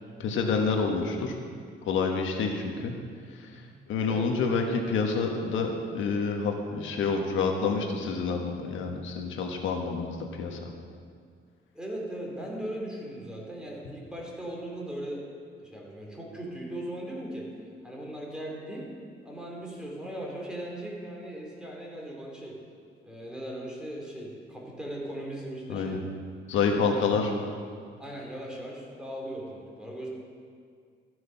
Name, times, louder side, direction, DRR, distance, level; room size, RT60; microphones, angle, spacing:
voice 1, 0.2-1.3 1.8-2.9 3.9-10.6 25.7-26.0 26.5-27.3, left 4 dB, 80° left, 2 dB, 1.4 m, -28 dB
voice 2, 11.7-15.3 15.6-17.5 17.8-18.9 19.2-22.6 23.0-26.1 26.5-27.0 28.0-30.1, right 1 dB, 5° right, -3 dB, 3.1 m, -38 dB
14.5 x 6.3 x 5.8 m, 2.1 s
cardioid pair, 90°, 20 cm